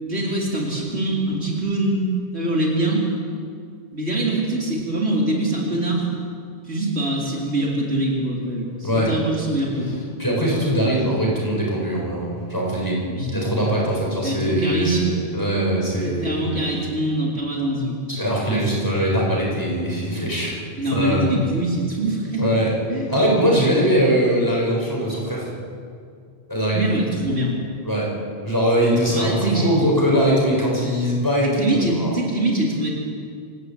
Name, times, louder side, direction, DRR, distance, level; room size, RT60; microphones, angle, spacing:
voice 1, 0.0-2.0 2.3-3.1 3.9-6.1 6.7-10.0 13.1-13.3 14.2-15.1 15.9-18.1 20.8-22.5 22.9-23.1 23.4-23.8 26.7-27.6 29.1-29.8 31.4-32.9, right 1 dB, 85° right, -3 dB, 4.3 m, -24 dB
voice 2, 10.2-13.0 13.3-16.5 18.1-20.6 20.9-21.3 22.4-22.7 23.1-25.5 26.5-26.8 27.8-28.1 28.4-32.1, equal, 20° left, -4 dB, 7.4 m, -21 dB
27.0 x 15.0 x 9.2 m, 2.2 s
omnidirectional pair, 1.1 m